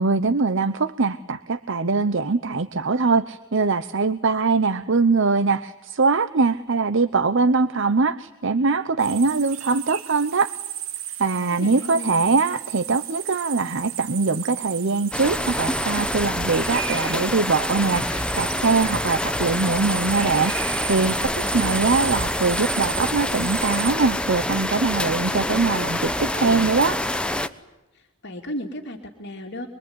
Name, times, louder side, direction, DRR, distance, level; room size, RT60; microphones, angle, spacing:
voice 1, 0.0-10.5 11.2-27.0, right 4 dB, 60° right, 13 dB, 0.9 m, -22 dB
sound 1, 9.0-23.9, right 12 dB, 80° right, 1.4 m, -34 dB
voice 2, 11.5-12.5 21.4-21.8 27.9-29.7, left 1 dB, 55° left, 1 dB, 2.7 m, -35 dB
sound 2, 15.1-27.5, left 1 dB, 5° left, 1.0 m, -26 dB
25.5 x 23.0 x 9.7 m, 1.0 s
head